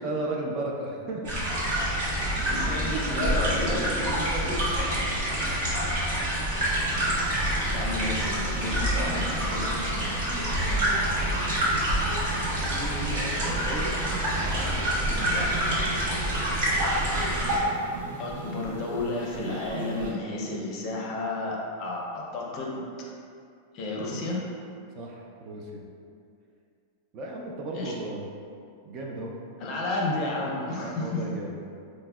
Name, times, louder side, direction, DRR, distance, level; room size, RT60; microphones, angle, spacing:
voice 1, 0.0-1.7 2.1-3.3 3.7-4.8 5.1-5.4 6.2-6.6 10.5-10.9 12.7-14.0 14.4-15.6 25.0-25.8 27.1-28.3 28.8-29.3 30.8-31.6, right 2 dB, 30° right, -1 dB, 0.3 m, -36 dB
sound 1, 1.2-17.6, right 1 dB, 55° right, 1.0 m, -27 dB
voice 2, 2.0-3.8 7.7-8.3 8.6-9.7 18.2-22.8 23.7-24.4 27.7-27.9 29.6-31.2, left 2 dB, 35° left, -2 dB, 0.5 m, -31 dB
sound 2, 6.6-20.1, right 2 dB, 85° right, 0.6 m, -38 dB
4.9 x 2.0 x 2.2 m, 2.4 s
supercardioid pair, 165°, 0 cm